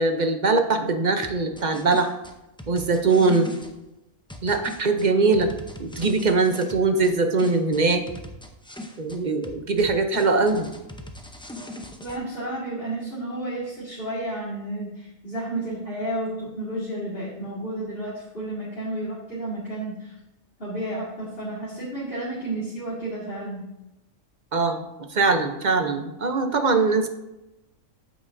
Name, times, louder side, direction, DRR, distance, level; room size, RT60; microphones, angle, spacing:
voice 1, 0.0-2.1 2.7-3.5 4.4-5.5 5.8-8.0 9.0-10.7 24.5-24.8 25.1-27.1, right 3 dB, 40° right, 6 dB, 0.7 m, -22 dB
sound 1, 1.2-3.7 4.3-7.1 7.4-9.2 9.4-12.2, left 1 dB, 5° left, 0.4 m, -40 dB
voice 2, 3.0-3.5 12.0-20.2 20.6-23.7, right 1 dB, 45° left, -9 dB, 2.3 m, -32 dB
9.3 x 8.2 x 2.6 m, 0.94 s
omnidirectional pair, 1.4 m